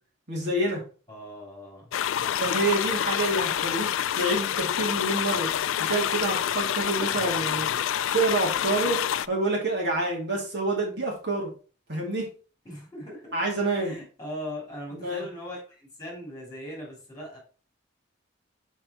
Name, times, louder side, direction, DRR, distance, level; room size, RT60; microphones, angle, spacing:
voice 1, 0.3-0.8 2.4-5.5 5.8-7.7 8.1-9.0 9.3-11.5 11.9-12.3 13.3-14.0 14.9-15.2, right 2 dB, 55° right, -2 dB, 2.4 m, -27 dB
voice 2, 1.1-1.9 2.2-2.4 7.1-7.9 12.6-13.4 13.8-17.4, equal, 20° left, -2 dB, 3.4 m, -40 dB
sound 1, 1.9-9.3, left 10 dB, 80° left, 0.3 m, -27 dB
5.9 x 5.4 x 4.4 m, 0.37 s
head